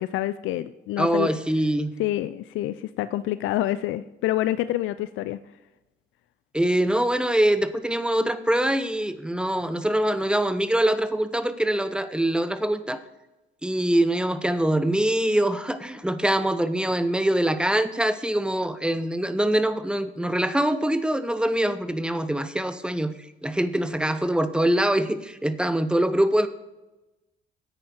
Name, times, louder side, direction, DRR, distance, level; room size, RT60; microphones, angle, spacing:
voice 1, 0.0-1.4 2.0-5.4, left 14 dB, 90° left, 13 dB, 0.4 m, -27 dB
voice 2, 1.0-1.9 6.5-13.0 13.6-26.5, right 1 dB, 5° right, 11 dB, 0.8 m, -24 dB
9.9 x 8.9 x 4.4 m, 1.0 s
cardioid pair, 90°, 20 cm